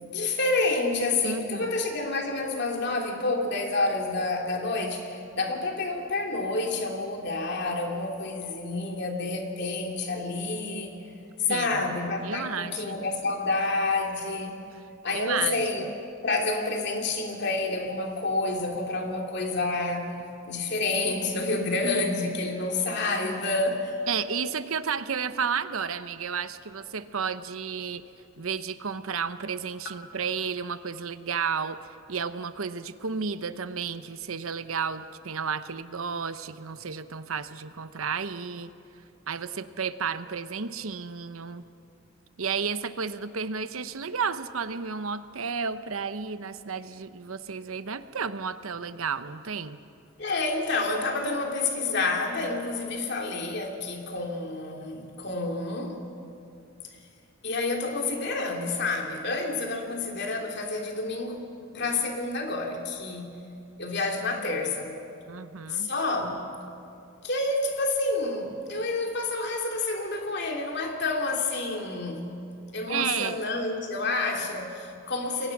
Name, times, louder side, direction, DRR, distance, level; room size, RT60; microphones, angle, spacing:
voice 1, 0.0-10.9 11.4-14.5 15.0-15.9 16.2-20.1 20.4-23.9 50.2-56.0 57.4-61.4 61.7-63.4 63.8-65.0 65.7-66.4 67.2-72.3 72.7-75.5, left 3 dB, 50° left, 2 dB, 3.0 m, -29 dB
voice 2, 1.2-1.8 11.5-11.9 12.2-13.0 14.7-14.8 15.1-15.9 24.1-28.0 28.4-31.8 32.1-38.7 39.3-41.6 42.4-49.8 65.3-65.9 72.9-73.4, right 6 dB, 80° right, 12 dB, 0.9 m, -32 dB
29.0 x 22.5 x 6.0 m, 2.6 s
head